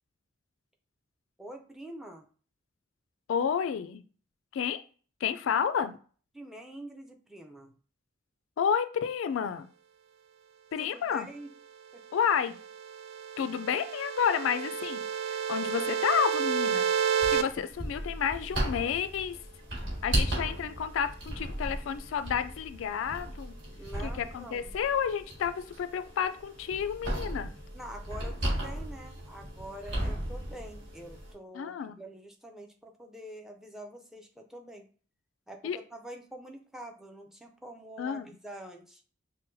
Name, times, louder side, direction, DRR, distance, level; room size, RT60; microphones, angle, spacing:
voice 1, 1.4-2.3 6.3-7.7 10.8-11.5 11.9-12.0 23.8-24.8 27.7-34.9 35.5-39.0, right 1 dB, ahead, 4 dB, 0.5 m, -46 dB
voice 2, 3.3-4.0 4.5-4.8 5.2-6.0 8.6-9.7 10.7-11.3 12.1-12.6 13.4-16.9 17.3-19.4 20.0-23.5 24.0-27.5 31.5-32.0 35.6-35.8 38.0-38.3, left 7 dB, 80° left, 11 dB, 0.3 m, -30 dB
sound 1, 12.5-17.4, right 8 dB, 85° right, 0.4 m, -30 dB
sound 2, 17.2-31.3, right 1 dB, 60° right, 1.8 m, -36 dB
5.5 x 2.1 x 2.6 m, 0.40 s
head